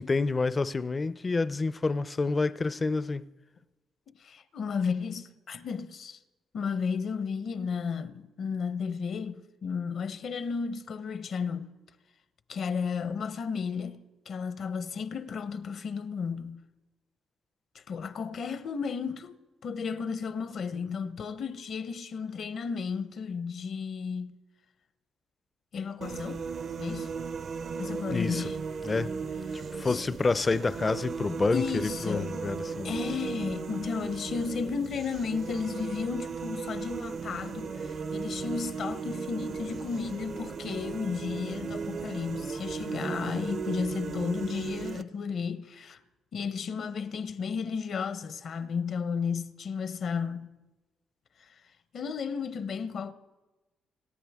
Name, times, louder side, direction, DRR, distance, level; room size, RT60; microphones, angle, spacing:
voice 1, 0.0-3.3 28.1-28.4 28.8-29.1 29.5-32.9, left 3 dB, 30° left, 0.5 m, -28 dB
voice 2, 4.1-6.2 6.5-11.7 12.5-16.6 17.7-19.4 19.6-24.3 25.7-26.4 26.8-27.1 27.8-28.6 29.8-30.0 31.5-32.3 32.8-46.0 46.3-50.6 51.4-51.5 51.9-53.1, left 6 dB, 60° left, 0.9 m, -33 dB
sound 1, 26.0-45.0, right 5 dB, 55° right, 0.7 m, -36 dB
26.5 x 13.5 x 3.6 m
cardioid pair, 90°, 0 cm